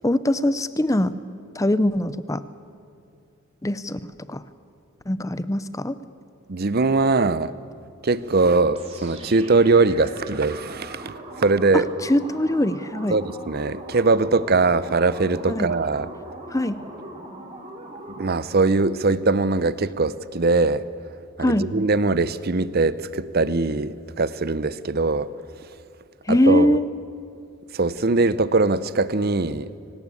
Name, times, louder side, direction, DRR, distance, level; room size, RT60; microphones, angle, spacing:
voice 1, 0.0-1.1 1.6-2.4 3.6-4.0 4.3-4.4 5.1-6.0 11.7-13.2 15.5-15.7 16.5-16.8 21.4-21.7 26.3-26.9, left 1 dB, 15° left, 14 dB, 0.6 m, -22 dB
voice 2, 6.5-7.5 8.0-11.1 11.4-11.9 13.1-16.1 18.2-20.8 21.4-25.3 26.3-26.8 27.7-29.7, right 3 dB, 45° right, 16 dB, 0.7 m, -21 dB
sound 1, 8.7-18.6, right 1 dB, 25° right, 3.3 m, -40 dB
24.5 x 18.5 x 8.5 m, 2.5 s
head